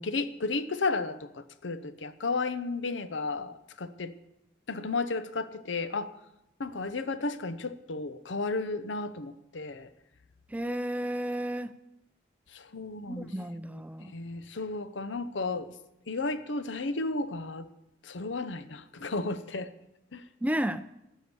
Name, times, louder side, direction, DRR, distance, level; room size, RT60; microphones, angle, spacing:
voice 1, 0.0-4.1 4.7-6.1 6.6-9.9 12.5-13.3 14.1-15.7 16.1-17.7 18.0-19.7 20.1-20.2, left 3 dB, 85° left, 13 dB, 0.8 m, -33 dB
voice 2, 10.5-11.7 13.1-14.1 20.4-20.9, right 1 dB, 10° right, 13 dB, 0.4 m, -32 dB
15.0 x 6.4 x 6.9 m, 0.87 s
head